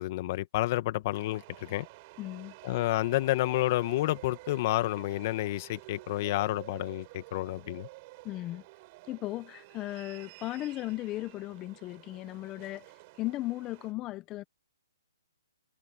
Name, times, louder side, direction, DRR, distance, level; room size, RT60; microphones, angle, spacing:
voice 1, 0.0-1.9 2.6-7.9, left 16 dB, 35° left, 1.7 m, -30 dB
sound 1, 1.1-13.9, right 24 dB, 30° right, 8.0 m, -51 dB
voice 2, 2.2-2.5 8.2-8.6 9.1-12.9 13.2-14.4, left 17 dB, 20° left, 1.0 m, -36 dB
hypercardioid pair, 150°, 2 cm